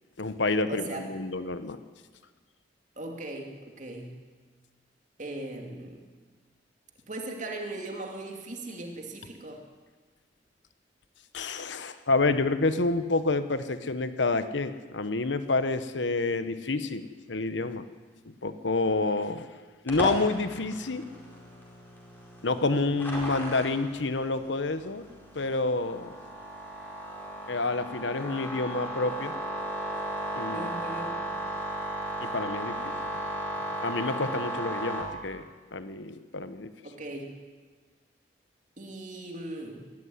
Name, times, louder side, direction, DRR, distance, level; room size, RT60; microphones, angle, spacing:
voice 1, 0.2-1.8 11.3-17.8 18.4-19.5 19.8-21.0 22.4-25.0 25.3-26.1 27.5-29.3 30.4-30.7 32.2-32.9 33.8-35.4 35.7-36.7, left 3 dB, 80° left, 11 dB, 1.1 m, -28 dB
voice 2, 0.7-1.1 3.0-4.2 5.2-6.0 7.1-9.6 30.5-31.2 36.8-37.3 38.8-39.9, right 2 dB, 45° right, 2 dB, 2.7 m, -38 dB
sound 1, 19.9-35.0, right 1 dB, 10° left, 4.6 m, -36 dB
20.0 x 13.5 x 9.7 m, 1.4 s
head